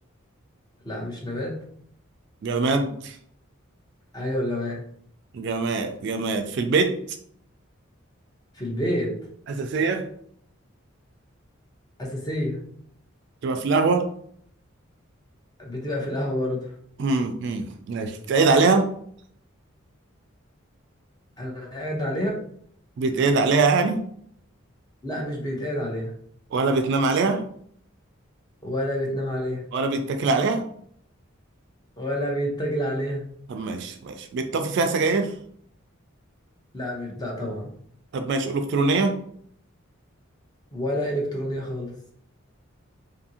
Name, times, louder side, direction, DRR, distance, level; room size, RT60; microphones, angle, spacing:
voice 1, 0.8-1.5 4.1-4.8 8.5-9.1 12.0-12.6 15.6-16.7 21.4-22.3 25.0-26.1 28.6-29.6 32.0-33.3 36.7-37.7 40.7-41.9, equal, 20° left, -1 dB, 0.7 m, -28 dB
voice 2, 2.4-3.2 5.3-7.0 9.5-10.1 13.4-14.0 17.0-18.9 23.0-24.0 26.5-27.4 29.7-30.7 33.5-35.3 38.1-39.2, right 3 dB, 55° right, 7 dB, 0.3 m, -23 dB
2.6 x 2.6 x 2.7 m, 0.65 s
head